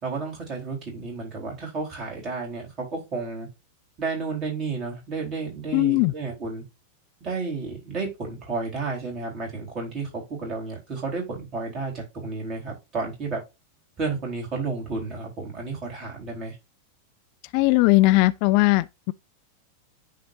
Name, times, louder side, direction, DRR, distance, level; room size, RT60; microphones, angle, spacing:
voice 1, 0.0-3.5 4.0-6.6 7.2-13.4 14.0-16.6, right 4 dB, 30° right, 4.1 m, -32 dB
voice 2, 5.7-6.1 17.5-18.8, left 21 dB, 45° left, 0.3 m, -18 dB
10.0 x 4.2 x 2.7 m
figure-of-eight pair, 90°, 0 cm